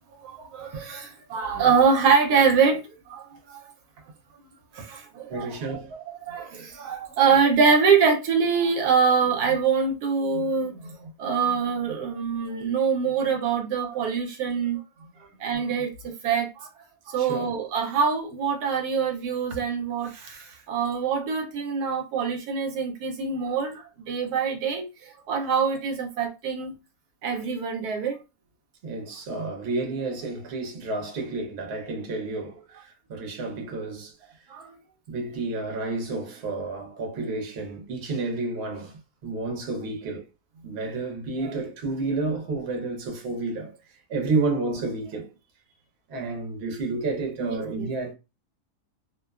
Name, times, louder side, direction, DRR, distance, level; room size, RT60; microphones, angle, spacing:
voice 1, 0.2-3.7 4.7-5.5 5.9-10.8 11.2-14.8 15.4-16.7 17.1-26.7 27.2-28.2 34.5-34.7 47.4-47.9, right 6 dB, 80° right, 1.1 m, -24 dB
voice 2, 5.3-5.9 17.2-17.5 28.8-34.1 34.4-34.5 35.1-40.2 40.6-45.3 46.1-48.1, right 3 dB, 55° right, 0.9 m, -30 dB
2.6 x 2.1 x 2.2 m
omnidirectional pair, 1.7 m